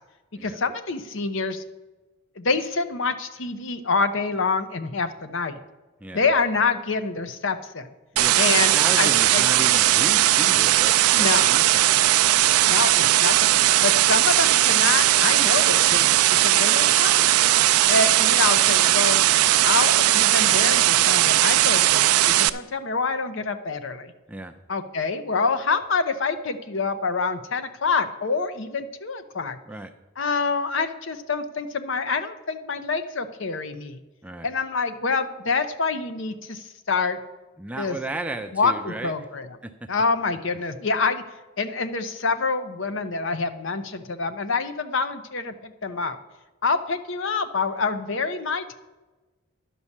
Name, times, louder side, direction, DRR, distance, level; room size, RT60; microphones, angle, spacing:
voice 1, 0.4-1.6 2.4-5.6 6.1-7.9 8.4-9.4 11.1-11.5 12.7-13.5 13.8-17.4 17.9-19.3 19.6-24.1 24.7-29.6 30.2-34.0 34.4-37.2 37.8-38.0 38.5-39.5 39.9-41.2 41.6-46.2 46.6-48.7, left 4 dB, 55° left, 10 dB, 0.7 m, -26 dB
voice 2, 8.1-11.9 24.3-24.5 29.7-29.9 34.2-34.5 37.6-39.1 39.6-39.9, right 2 dB, 5° right, 6 dB, 0.4 m, -34 dB
sound 1, 8.2-22.5, right 14 dB, 85° right, 0.4 m, -18 dB
11.0 x 5.4 x 7.2 m, 1.2 s
head